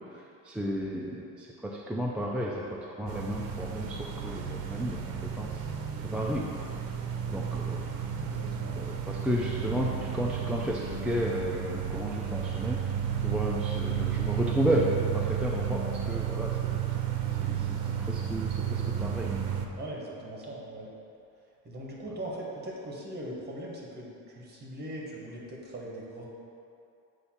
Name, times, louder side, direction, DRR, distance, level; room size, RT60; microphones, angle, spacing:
voice 1, 0.1-5.6 6.0-6.4 7.3-7.8 8.8-12.9 13.2-14.9 15.1-16.8 17.3-19.3, equal, 5° right, -4 dB, 0.4 m, -33 dB
sound 1, 3.1-19.6, right 8 dB, 85° right, 0.7 m, -32 dB
voice 2, 8.2-8.8 19.8-20.9 21.6-26.2, right 1 dB, 30° right, -3 dB, 1.4 m, -40 dB
8.1 x 2.7 x 5.7 m, 2.6 s
cardioid pair, 125°, 35 cm